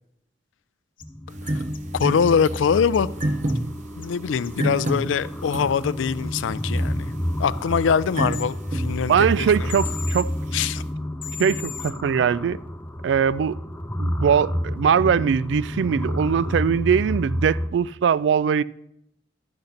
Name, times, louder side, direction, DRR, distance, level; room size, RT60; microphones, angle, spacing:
sound 1, 1.0-1.1 1.5-2.6 2.9-3.5 4.0-4.1 4.4-4.5 4.9-5.0 8.3-8.4 9.7-10.2 11.2-11.9, left 11 dB, 45° left, 0.8 m, -36 dB
sound 2, 1.0-17.7, equal, 10° left, 0.6 m, -30 dB
sound 3, 1.3-10.9, right 1 dB, 40° right, 0.7 m, -32 dB
voice 1, 1.9-3.1 4.0-7.1 7.4-9.8 10.5-10.8, left 6 dB, 85° left, 0.4 m, -23 dB
voice 2, 9.1-10.7 11.4-12.6 13.0-13.6 14.0-18.6, right 7 dB, 65° right, 0.3 m, -21 dB
11.5 x 6.6 x 5.7 m
head